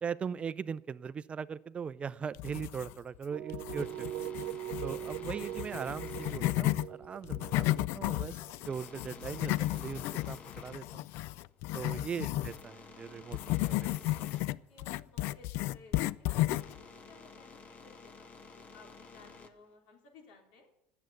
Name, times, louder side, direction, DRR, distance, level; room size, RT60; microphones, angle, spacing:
voice 1, 0.0-4.1 4.8-8.4 8.6-11.1 11.7-14.0, right 6 dB, 25° right, 16 dB, 0.5 m, -40 dB
sound 1, 2.3-3.2 3.5-6.9 7.2-12.6 13.3-16.8, left 17 dB, 65° left, 0.4 m, -33 dB
sound 2, 3.1-19.7, left 4 dB, 30° left, 1.2 m, -53 dB
sound 3, 3.3-9.2, right 13 dB, 75° right, 1.0 m, -41 dB
voice 2, 11.7-12.1 14.7-16.3 16.7-20.7, left 3 dB, 80° left, 1 dB, 3.8 m, -58 dB
10.5 x 7.8 x 9.6 m, 0.80 s
supercardioid pair, 120°, 5 cm